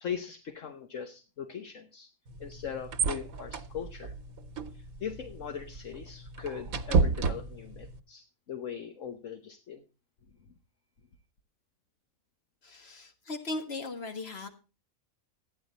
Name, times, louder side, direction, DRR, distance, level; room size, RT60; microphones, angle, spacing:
voice 1, 0.0-2.1 2.4-4.1 4.7-9.8, left 8 dB, 65° left, 7 dB, 1.4 m, -40 dB
sound 1, 2.3-8.0, right 4 dB, 90° right, 1.4 m, -32 dB
voice 2, 12.6-14.5, left 2 dB, 50° left, 6 dB, 1.9 m, -38 dB
13.0 x 9.5 x 4.0 m, 0.32 s
omnidirectional pair, 1.4 m